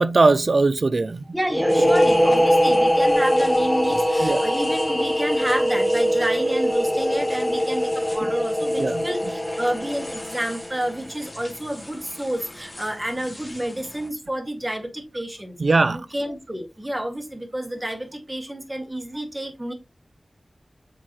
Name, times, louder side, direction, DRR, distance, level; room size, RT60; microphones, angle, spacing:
voice 1, 0.0-1.2 4.2-4.4 8.8-9.0 15.6-16.0, right 3 dB, 70° right, 0.4 m, -19 dB
voice 2, 1.3-19.7, right 1 dB, 15° right, 2.0 m, -30 dB
sound 1, 1.5-11.0, equal, 15° left, 1.2 m, -21 dB
sound 2, 1.7-14.1, left 1 dB, 35° left, 2.0 m, -43 dB
7.4 x 4.7 x 3.1 m
wide cardioid pair, 60°, 0 cm